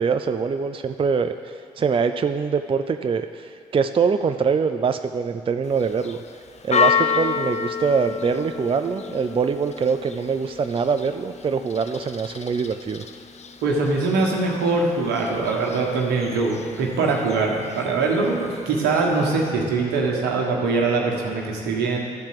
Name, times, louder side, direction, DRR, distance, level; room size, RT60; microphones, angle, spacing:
voice 1, 0.0-6.2 6.6-13.0, right 5 dB, 35° right, 8 dB, 0.4 m, -24 dB
Church bell, 5.6-19.5, left 6 dB, 40° left, 0.7 m, -30 dB
voice 2, 13.6-22.0, right 3 dB, 80° right, 0 dB, 1.5 m, -22 dB
12.0 x 4.4 x 7.6 m, 2.2 s
hypercardioid pair, 45°, 17 cm